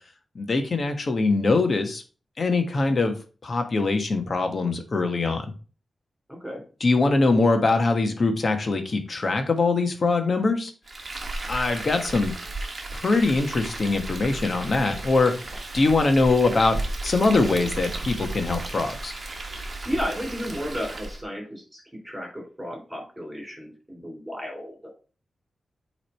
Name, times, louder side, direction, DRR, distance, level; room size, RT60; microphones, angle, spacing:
voice 1, 0.3-2.0 2.4-3.1 3.4-5.5 6.8-10.7 11.5-12.3 12.9-15.3 15.7-19.1, left 3 dB, 45° left, 6 dB, 1.1 m, -22 dB
voice 2, 6.3-6.6 19.8-24.9, equal, 10° right, 0 dB, 3.3 m, -33 dB
Frying (food), 10.9-21.2, right 2 dB, 35° right, 1.2 m, -34 dB
8.2 x 3.3 x 4.4 m, 0.37 s
wide cardioid pair, 135°, 0 cm